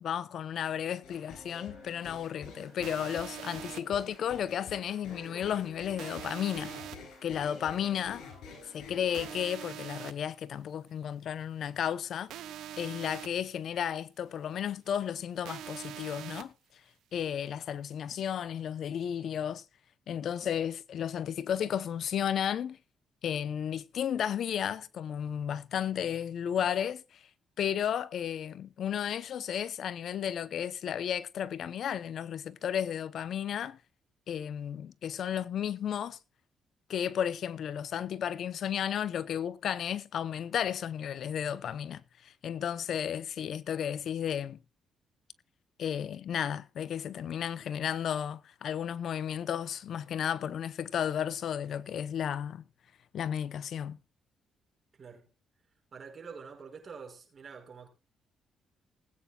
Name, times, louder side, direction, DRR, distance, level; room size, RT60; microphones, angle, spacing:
voice 1, 0.0-6.7 7.2-8.3 8.7-12.3 12.8-16.5 17.1-19.6 20.1-22.8 23.2-27.3 27.6-33.8 34.3-36.2 36.9-44.6 45.8-52.6 53.1-54.0, left 9 dB, 65° left, 0.7 m, -33 dB
sound 1, 1.0-9.4, left 4 dB, 80° left, 7.6 m, -48 dB
sound 2, 2.8-3.8 6.0-7.0 9.1-10.1 12.3-13.3 15.4-16.4, right 12 dB, 80° right, 1.0 m, -43 dB
voice 2, 54.9-55.3 55.9-57.9, right 5 dB, 40° right, 5.7 m, -46 dB
20.0 x 9.2 x 2.3 m
cardioid pair, 90°, 0 cm